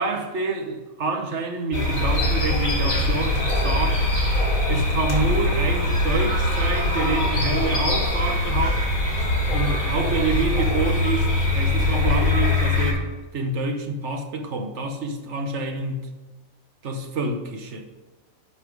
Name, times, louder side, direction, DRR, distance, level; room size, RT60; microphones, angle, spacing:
voice 1, 0.0-4.0 4.7-8.8 9.5-16.1 16.8-17.8, right 3 dB, 55° right, 5 dB, 1.4 m, -27 dB
sound 1, 1.7-12.9, left 1 dB, 75° left, 3.1 m, -22 dB
10.5 x 5.7 x 4.7 m, 1.2 s
omnidirectional pair, 1.5 m